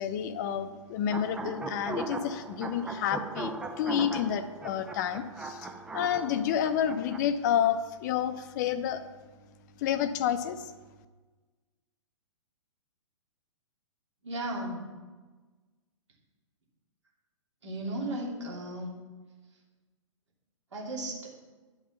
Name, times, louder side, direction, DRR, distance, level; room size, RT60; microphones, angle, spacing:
voice 1, 0.0-5.7 5.9-9.0 9.8-10.7, left 9 dB, 35° left, 11 dB, 0.6 m, -29 dB
sound 1, 1.1-7.2, right 2 dB, 5° right, 0.3 m, -38 dB
voice 2, 14.2-14.9 17.6-18.9 20.7-21.3, right 1 dB, 65° right, -2 dB, 2.7 m, -35 dB
9.9 x 6.0 x 5.7 m, 1.3 s
figure-of-eight pair, 115°, 16 cm